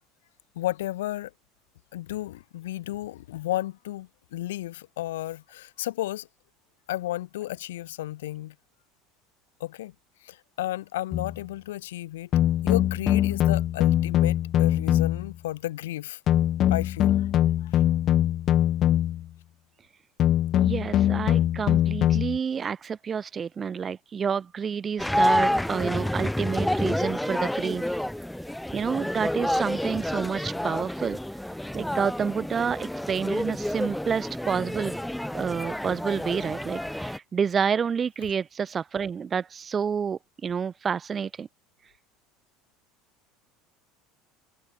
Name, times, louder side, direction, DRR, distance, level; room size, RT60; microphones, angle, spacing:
voice 1, 0.5-1.3 1.9-6.3 6.9-8.5 9.6-9.9 10.2-12.3 12.6-16.2 16.7-17.3 17.6-17.8, left 15 dB, 80° left, 3.1 m, -33 dB
sound 1, 11.1-11.4 12.3-15.3 16.3-19.3 20.2-22.4, left 12 dB, 50° left, 1.1 m, -22 dB
voice 2, 20.6-28.0 28.7-31.2 31.7-35.0 35.3-41.5, right 6 dB, 30° right, 2.5 m, -29 dB
sound 2, 25.0-37.2, left 1 dB, 5° left, 0.8 m, -29 dB
hypercardioid pair, 75°, 0 cm